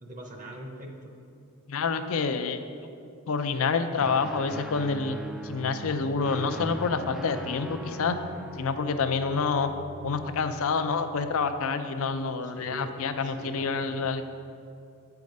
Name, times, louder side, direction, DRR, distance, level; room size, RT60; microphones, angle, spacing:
voice 1, 0.0-1.2 12.4-12.9 13.2-14.1, right 1 dB, 35° right, 2 dB, 0.7 m, -42 dB
voice 2, 1.7-2.6 3.3-5.2 5.4-8.2 8.5-9.7 10.0-14.2, left 5 dB, 65° left, 9 dB, 0.5 m, -28 dB
Guitar, 4.0-11.6, equal, ahead, 0.3 m, -40 dB
8.5 x 4.7 x 5.3 m, 2.5 s
head